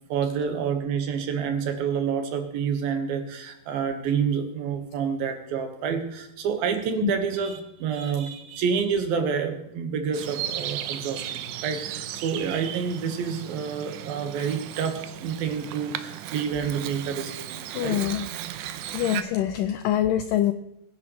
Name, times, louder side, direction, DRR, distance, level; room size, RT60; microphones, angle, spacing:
voice 1, 0.1-18.0, right 6 dB, 70° right, 5 dB, 3.1 m, -28 dB
Bird vocalization bird call bird song, 10.1-19.2, right 11 dB, 90° right, 1.8 m, -36 dB
voice 2, 17.7-18.3 18.9-20.5, left 11 dB, 90° left, 10 dB, 1.9 m, -24 dB
22.5 x 10.0 x 3.2 m, 0.84 s
omnidirectional pair, 4.5 m